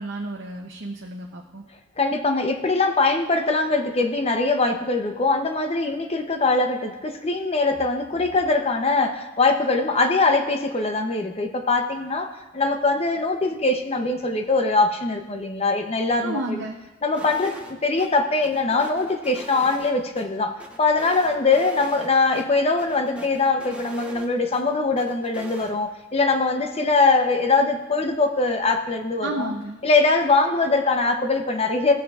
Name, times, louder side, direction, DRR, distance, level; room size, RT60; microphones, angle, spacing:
voice 1, 0.0-1.6 16.2-16.8 29.2-29.8, right 2 dB, 65° right, 0 dB, 0.7 m, -31 dB
voice 2, 2.0-16.6 17.0-29.5 29.8-31.9, left 3 dB, 30° left, 5 dB, 0.7 m, -22 dB
sound 1, 17.2-17.7 18.0-18.1 18.4-20.2 20.6-22.1 22.3-22.4 22.8-24.6 25.0-25.7, right 1 dB, 5° right, 0.7 m, -41 dB
15.5 x 7.4 x 2.4 m, 1.1 s
head